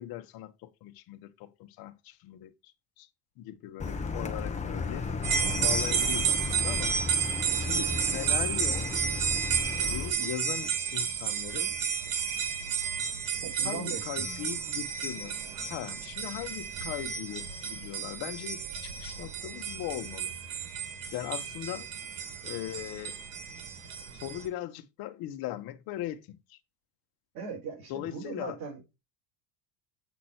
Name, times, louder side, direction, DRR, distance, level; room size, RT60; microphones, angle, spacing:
voice 1, 0.0-2.5 3.0-3.1 3.4-5.0 5.6-6.9 7.6-8.9 9.8-11.8 13.6-20.3 21.1-21.9 22.4-23.2 24.1-26.6 27.9-28.6, left 13 dB, 60° left, 1.3 m, -39 dB
Car, 3.8-10.1, left 4 dB, 15° left, 1.4 m, -34 dB
sound 1, 5.2-24.5, right 7 dB, 85° right, 2.8 m, -32 dB
voice 2, 13.4-14.5 27.3-29.0, right 4 dB, 50° right, 4.9 m, -40 dB
8.3 x 6.2 x 4.4 m
cardioid pair, 145°, 42 cm